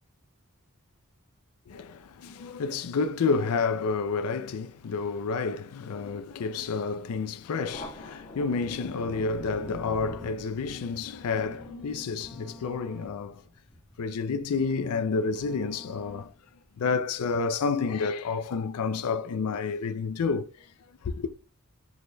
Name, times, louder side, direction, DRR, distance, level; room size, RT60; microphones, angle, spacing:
voice 1, 1.7-13.4 14.0-16.3 16.8-20.7 21.0-21.3, left 4 dB, 85° left, 0.4 m, -30 dB
Thunder, 7.6-14.7, left 1 dB, 30° left, 1.4 m, -45 dB
sound 1, 8.6-16.6, left 1 dB, 5° right, 1.0 m, -49 dB
4.6 x 4.2 x 2.2 m
head